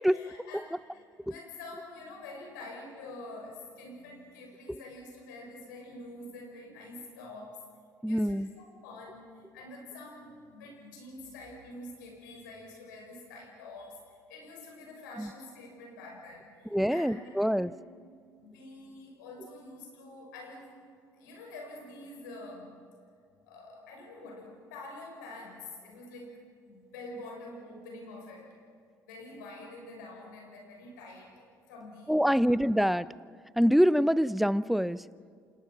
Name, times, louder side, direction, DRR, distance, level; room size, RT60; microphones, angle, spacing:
voice 1, 0.0-7.6 8.0-17.8 18.4-20.7 21.1-22.8 23.5-26.4 26.6-28.6 29.0-32.5, left 2 dB, 80° left, 1 dB, 6.4 m, -47 dB
voice 2, 8.0-8.5 15.2-15.3 16.7-17.7 32.1-33.1 33.6-35.0, equal, ahead, 18 dB, 0.7 m, -25 dB
28.5 x 26.5 x 5.9 m, 2.2 s
hypercardioid pair, 55°, 10 cm